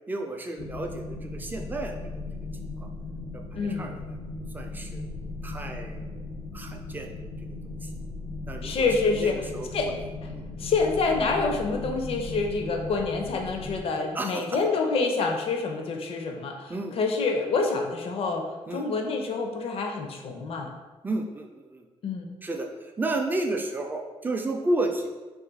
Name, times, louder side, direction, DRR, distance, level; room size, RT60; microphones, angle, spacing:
voice 1, 0.1-2.2 2.8-2.9 3.3-4.0 4.5-5.0 5.4-6.3 6.5-7.3 7.8-7.9 8.5-10.0 10.3-10.5 14.1-14.6 16.7-17.0 18.7-18.9 21.0-21.8 22.4-25.1, right 2 dB, 15° right, 3 dB, 0.3 m, -32 dB
sound 1, 0.6-13.8, left 2 dB, 80° left, 0.8 m, -37 dB
voice 2, 3.5-3.9 8.6-9.4 9.7-9.9 10.6-20.7 22.0-22.4, left 4 dB, 60° left, 3 dB, 0.5 m, -27 dB
2.6 x 2.4 x 3.8 m, 1.2 s
cardioid pair, 135°, 11 cm